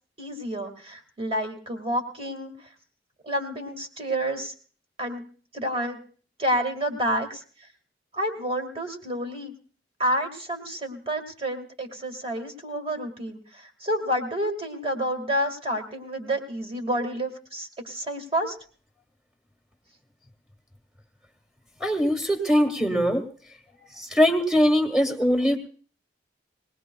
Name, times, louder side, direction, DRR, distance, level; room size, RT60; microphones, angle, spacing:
voice 1, 0.2-2.7 3.2-4.5 5.0-5.2 5.5-6.0 6.4-7.4 8.1-9.5 10.0-18.6, equal, 30° right, 3 dB, 1.9 m, -29 dB
voice 2, 21.8-23.2 24.0-25.6, equal, ahead, 5 dB, 1.6 m, -21 dB
21.5 x 19.0 x 2.3 m, 0.43 s
head